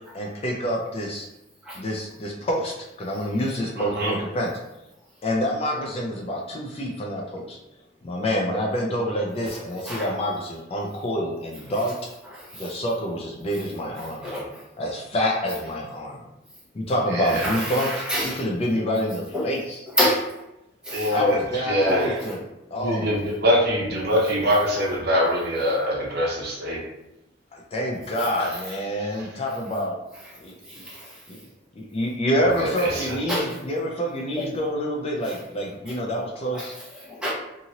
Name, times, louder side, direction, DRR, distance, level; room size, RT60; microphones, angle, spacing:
voice 1, 0.1-1.3 1.7-4.5 5.2-7.6 8.0-11.9 12.6-14.5 14.8-16.2 16.7-18.0 18.4-19.8 21.1-22.4 22.7-23.2 27.5-30.0 30.4-30.8 31.3-31.4 31.8-36.8, equal, 30° left, -1 dB, 0.4 m, -27 dB
voice 2, 3.8-4.1 17.1-17.5 20.9-22.2 22.8-26.8 29.0-29.3 32.4-33.1, equal, 55° right, -3 dB, 0.8 m, -24 dB
voice 3, 9.5-10.1 12.3-12.7 14.0-14.6 17.3-18.4 19.3-19.5 20.0-20.3 20.8-21.1 21.9-22.4 28.2-28.3 30.7-31.2 32.9-33.0 33.3-33.5 34.4-34.5 35.2-35.4 35.9-36.0 36.5-37.3, left 1 dB, 5° right, -8 dB, 1.0 m, -29 dB
2.8 x 2.6 x 2.8 m, 0.91 s
head